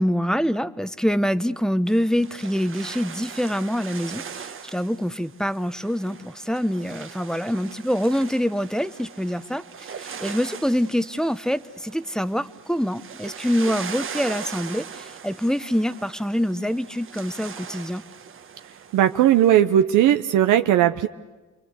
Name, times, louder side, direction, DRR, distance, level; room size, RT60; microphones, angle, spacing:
voice 1, 0.0-9.6 10.0-18.0, equal, ahead, 14 dB, 0.8 m, -25 dB
sound 1, 1.9-19.5, right 7 dB, 45° right, 1.2 m, -40 dB
voice 2, 18.9-21.1, right 11 dB, 80° right, 8 dB, 0.8 m, -17 dB
28.0 x 22.0 x 8.1 m, 1.2 s
cardioid pair, 90°, 30 cm